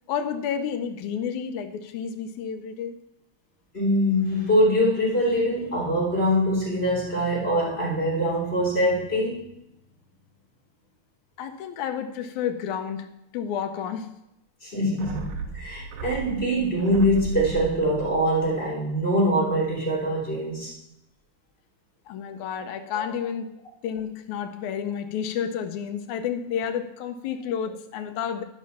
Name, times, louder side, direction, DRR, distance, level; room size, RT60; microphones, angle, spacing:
voice 1, 0.1-3.0 11.4-13.1 13.3-14.1 22.1-23.5 23.8-28.4, left 8 dB, 75° left, 7 dB, 2.1 m, -30 dB
voice 2, 3.7-9.4 14.6-20.7 22.9-23.0, equal, 20° left, -6 dB, 3.1 m, -23 dB
sound 1, 15.0-19.6 19.9-20.0, right 4 dB, 70° right, 1.8 m, -37 dB
11.5 x 5.5 x 5.6 m, 0.82 s
omnidirectional pair, 3.5 m